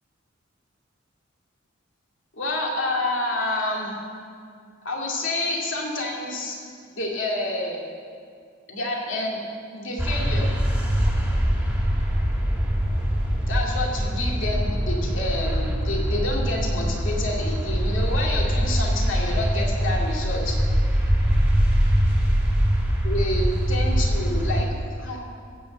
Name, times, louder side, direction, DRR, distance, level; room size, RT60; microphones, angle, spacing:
voice 1, 2.3-3.9 4.8-6.6 6.9-7.8 8.7-9.4 9.7-10.6 13.5-20.6 23.0-25.2, left 1 dB, 65° left, -2 dB, 2.5 m, -28 dB
sound 1, 10.0-24.6, equal, 5° right, 1.8 m, -23 dB
15.5 x 6.3 x 7.7 m, 2.2 s
head